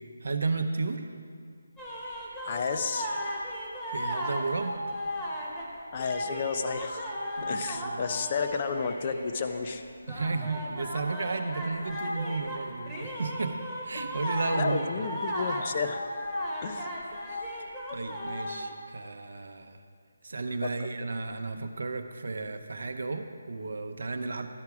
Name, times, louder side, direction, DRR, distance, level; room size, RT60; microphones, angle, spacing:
voice 1, 0.2-1.1 3.9-4.8 7.4-8.0 10.1-13.6 13.8-15.1 17.3-19.8 20.2-24.5, right 3 dB, 70° right, 6 dB, 0.6 m, -33 dB
sound 1, 1.8-5.7 6.0-9.8 10.0-18.7, equal, 10° left, 1.0 m, -35 dB
voice 2, 2.4-3.1 5.9-7.1 7.5-9.8 14.5-16.0 16.6-16.9 20.6-20.9, left 5 dB, 30° left, 7 dB, 0.4 m, -31 dB
12.0 x 5.8 x 4.7 m, 2.1 s
hypercardioid pair, 170°, 0 cm